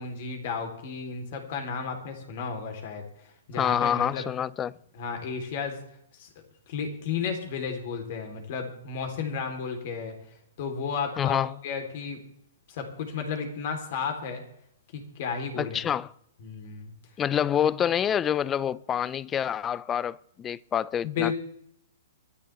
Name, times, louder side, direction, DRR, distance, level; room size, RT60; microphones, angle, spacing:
voice 1, 0.0-4.2 4.9-5.8 6.2-6.3 6.7-10.1 10.6-12.2 12.7-14.4 14.9-15.8 16.4-16.9 21.0-21.4, left 6 dB, 55° left, 3.6 m, -33 dB
voice 2, 3.6-4.7 11.2-11.5 15.6-16.1 17.2-21.4, left 9 dB, 20° left, 0.4 m, -27 dB
24.5 x 10.0 x 3.5 m
hypercardioid pair, 125°, 0 cm